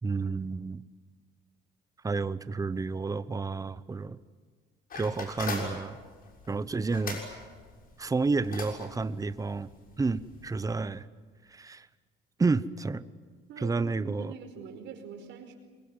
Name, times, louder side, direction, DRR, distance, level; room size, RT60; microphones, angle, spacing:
voice 1, 0.0-0.8 2.0-4.2 4.9-6.0 6.5-7.2 8.0-11.1 11.5-11.9 12.4-13.0 13.6-14.3, right 4 dB, 15° right, 15 dB, 0.9 m, -30 dB
sound 1, 4.9-10.8, left 4 dB, 45° left, 6.6 m, -42 dB
voice 2, 13.5-15.6, right 6 dB, 70° right, 4 dB, 4.9 m, -44 dB
25.0 x 22.5 x 9.5 m, 1.6 s
cardioid pair, 110°, 20 cm